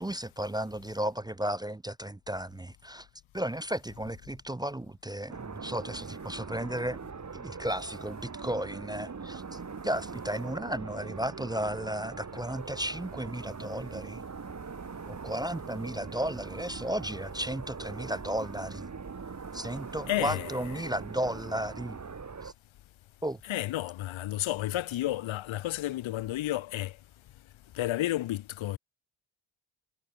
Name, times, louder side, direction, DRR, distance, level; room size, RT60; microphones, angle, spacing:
voice 1, 0.0-3.1 3.3-7.0 7.3-9.6 9.8-14.2 15.1-18.9 19.5-22.0 22.4-22.5 23.2-23.4, right 1 dB, 10° right, 0.8 m, -34 dB
sound 1, 5.3-22.5, right 5 dB, 35° right, 7.0 m, -42 dB
voice 2, 20.1-20.5 23.4-27.0 27.7-28.8, left 14 dB, 75° left, 1.6 m, -31 dB
cardioid pair, 85°, 47 cm